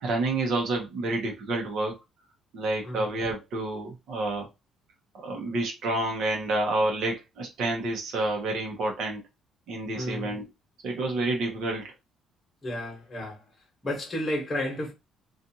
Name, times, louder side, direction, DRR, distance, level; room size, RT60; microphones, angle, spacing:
voice 1, 0.0-2.0 2.5-4.5 5.1-9.2 9.7-10.5 10.8-11.9, right 2 dB, 70° right, 0.8 m, -29 dB
voice 2, 9.9-10.3 12.6-13.4 13.8-14.9, left 1 dB, 20° left, 1.1 m, -32 dB
2.6 x 2.4 x 2.7 m
cardioid pair, 130°, 0 cm